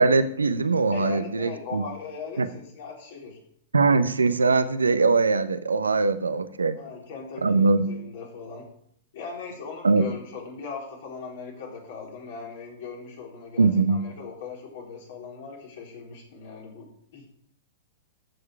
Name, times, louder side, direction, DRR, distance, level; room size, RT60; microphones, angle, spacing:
voice 1, 0.0-1.8 2.4-2.5 3.7-6.8 7.4-7.9 9.8-10.0 13.6-14.0, right 4 dB, 85° right, 12 dB, 0.8 m, -21 dB
voice 2, 0.9-3.4 6.8-8.7 9.1-17.3, left 5 dB, 60° left, -1 dB, 3.9 m, -39 dB
14.0 x 6.7 x 4.7 m, 0.67 s
figure-of-eight pair, 105°, 0 cm